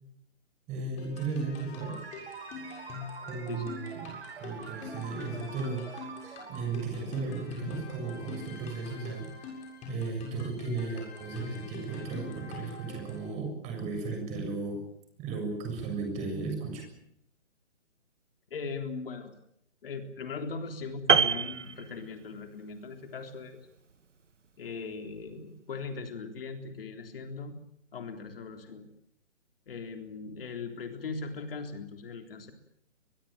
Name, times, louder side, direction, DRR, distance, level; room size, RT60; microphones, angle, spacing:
voice 1, 0.7-2.0 3.2-9.3 9.9-14.8 15.2-16.8, right 4 dB, 20° right, 4 dB, 7.1 m, -35 dB
sound 1, 1.0-13.3, left 5 dB, 20° left, 7.1 m, -44 dB
sound 2, 1.8-8.1, right 6 dB, 60° right, 2.7 m, -46 dB
voice 2, 3.5-3.8 18.5-19.3 19.8-23.6 24.6-27.5 27.9-28.9 29.7-32.5, left 4 dB, 50° left, 6 dB, 3.7 m, -39 dB
Piano, 21.1-22.5 22.8-23.1, right 6 dB, 85° right, 2.2 m, -26 dB
23.5 x 21.5 x 9.0 m, 0.74 s
hypercardioid pair, 145°, 36 cm